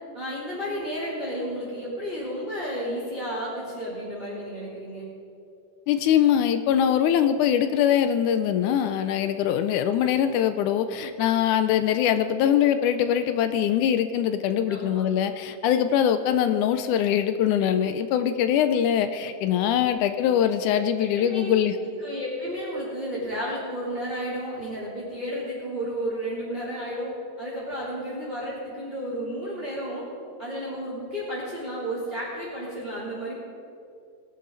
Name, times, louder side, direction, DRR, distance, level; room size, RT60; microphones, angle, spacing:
voice 1, 0.1-5.1 14.7-15.0 19.8-19.9 21.0-21.5 22.0-30.0 30.4-33.3, equal, 15° right, -7 dB, 3.5 m, -32 dB
voice 2, 5.9-21.8, left 9 dB, 80° left, 9 dB, 2.0 m, -22 dB
21.0 x 11.5 x 4.0 m, 2.6 s
omnidirectional pair, 3.7 m